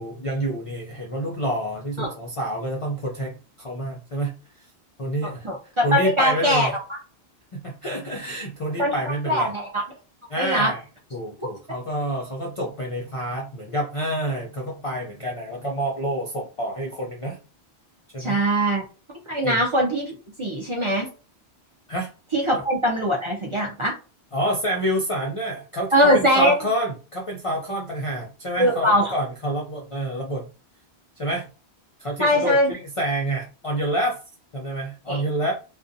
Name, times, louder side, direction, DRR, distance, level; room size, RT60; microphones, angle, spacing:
voice 1, 0.0-4.3 5.0-5.5 5.8-6.7 7.5-9.5 10.3-10.8 11.1-17.4 18.1-18.4 19.4-19.6 21.9-22.1 24.3-30.4 31.2-31.5 32.0-34.2 34.5-35.5, right 1 dB, 50° left, -1 dB, 0.4 m, -28 dB
voice 2, 5.2-7.0 8.8-8.9 9.2-9.8 10.4-10.7 11.7-11.8 18.2-18.8 19.3-21.1 22.3-23.9 25.9-26.5 28.6-29.1 32.2-32.7 35.1-35.2, equal, 40° right, -2 dB, 0.5 m, -21 dB
2.5 x 2.2 x 2.5 m, 0.35 s
omnidirectional pair, 1.1 m